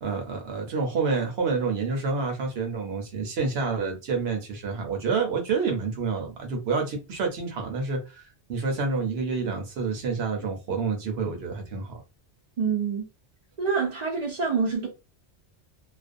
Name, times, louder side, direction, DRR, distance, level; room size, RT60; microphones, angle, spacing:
voice 1, 0.0-12.0, right 4 dB, 70° right, 0.9 m, -28 dB
voice 2, 12.6-13.1 13.6-14.9, right 5 dB, 50° right, 0.5 m, -26 dB
2.4 x 2.1 x 2.5 m
omnidirectional pair, 1.2 m